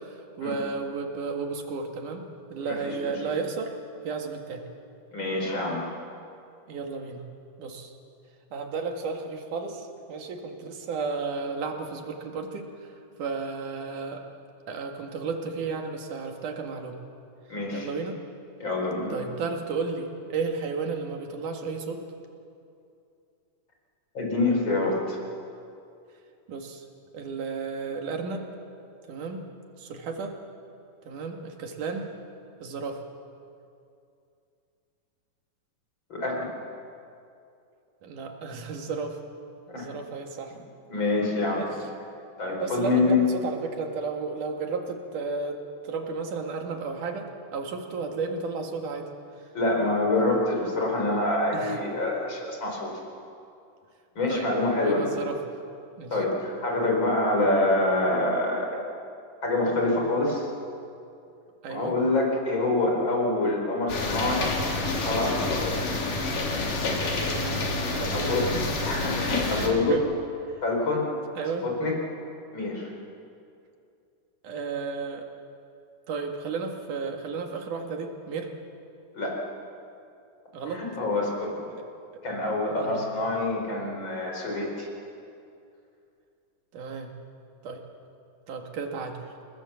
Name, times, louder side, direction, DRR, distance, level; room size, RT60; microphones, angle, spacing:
voice 1, 0.0-3.7 4.0-4.6 6.7-7.2 7.6-7.9 8.5-14.2 14.7-17.0 17.7-18.2 19.1-22.0 26.5-26.9 27.1-28.5 29.1-29.5 29.8-30.4 31.1-32.1 32.6-33.0 38.0-39.2 39.7-40.6 41.6-41.7 42.6-49.1 51.5-51.8 54.3-54.5 54.8-55.4 56.0-56.2 61.6-62.0 67.0-67.6 67.9-68.7 69.5-70.0 71.4-71.7 74.4-75.3 76.1-78.5 80.5-80.8 81.7-81.8 82.8-83.1 86.7-87.1 87.6-87.8 88.5-89.2, right 4 dB, 75° right, 3 dB, 3.5 m, -33 dB
voice 2, 2.6-3.3 5.1-5.8 17.5-17.9 18.6-19.1 24.2-25.2 36.1-36.5 39.7-39.8 40.9-41.7 42.4-43.2 49.5-52.9 54.2-55.1 56.1-58.9 59.4-60.5 61.7-64.4 64.9-65.8 68.1-68.4 68.8-70.0 70.6-71.1 71.6-72.0 72.5-72.9 79.1-79.4 80.7-81.6 82.2-84.9, left 2 dB, 35° left, 0 dB, 5.2 m, -26 dB
sound 1, 63.9-69.7, left 2 dB, 80° left, 4.5 m, -28 dB
29.5 x 19.5 x 7.2 m, 2.5 s
omnidirectional pair, 3.7 m